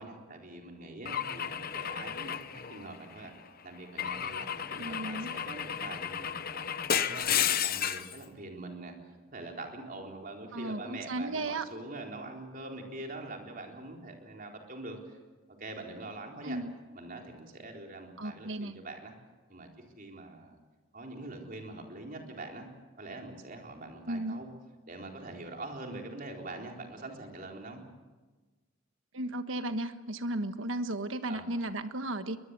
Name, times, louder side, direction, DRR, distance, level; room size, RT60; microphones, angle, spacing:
voice 1, 0.0-3.3 3.6-15.2 15.6-16.6 16.9-19.1 19.5-19.7 20.0-20.6 20.9-22.7 23.0-24.5 24.9-27.8 31.3-31.5, right 2 dB, 45° right, 1 dB, 4.0 m, -44 dB
Car / Engine / Glass, 1.1-3.3 4.0-8.2, left 9 dB, 45° left, 0.8 m, -33 dB
voice 2, 4.8-5.3 10.5-11.6 16.4-16.7 18.2-18.7 24.1-24.4 29.1-32.4, right 1 dB, 70° right, 9 dB, 1.4 m, -35 dB
23.0 x 21.0 x 8.3 m, 1.3 s
head